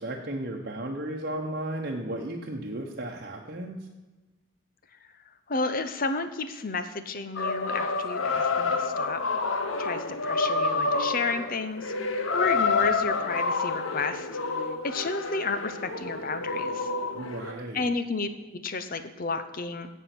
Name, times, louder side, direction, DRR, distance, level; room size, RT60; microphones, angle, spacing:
voice 1, 0.0-3.8 17.1-17.9, right 1 dB, 50° right, 0 dB, 1.0 m, -34 dB
voice 2, 5.5-9.2 9.8-14.3 14.8-16.9 17.7-19.9, left 3 dB, 45° left, 10 dB, 0.8 m, -31 dB
sound 1, 7.4-17.5, left 4 dB, 90° left, 1.0 m, -28 dB
16.0 x 5.5 x 6.0 m, 1.2 s
head